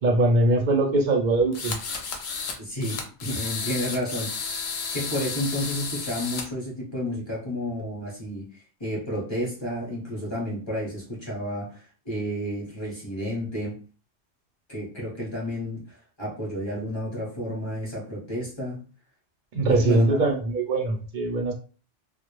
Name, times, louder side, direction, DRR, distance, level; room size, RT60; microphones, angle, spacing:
voice 1, 0.0-1.7 19.5-21.5, right 2 dB, 55° right, 2 dB, 0.5 m, -22 dB
sound 1, 1.5-2.6 2.8-6.4, left 5 dB, 65° left, 0.8 m, -32 dB
voice 2, 2.6-4.5 4.9-13.8 14.7-18.8 19.7-20.2, equal, 30° left, -5 dB, 0.7 m, -31 dB
2.1 x 2.0 x 3.0 m, 0.38 s
omnidirectional pair, 1.2 m